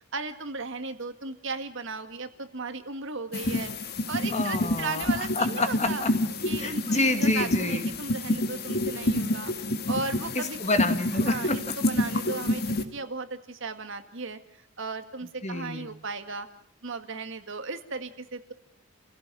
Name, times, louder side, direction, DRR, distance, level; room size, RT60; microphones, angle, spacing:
voice 1, 0.1-6.0 6.5-9.5 9.9-10.6 11.2-14.4 14.8-16.5 16.8-18.5, right 4 dB, 60° right, 8 dB, 1.9 m, -36 dB
sound 1, 3.3-12.8, left 1 dB, 50° left, 2.1 m, -28 dB
voice 2, 4.3-5.1 5.4-6.1 6.6-7.9 10.3-11.6 15.4-15.9, left 2 dB, 35° left, 8 dB, 2.3 m, -28 dB
28.5 x 16.5 x 9.0 m, 0.67 s
head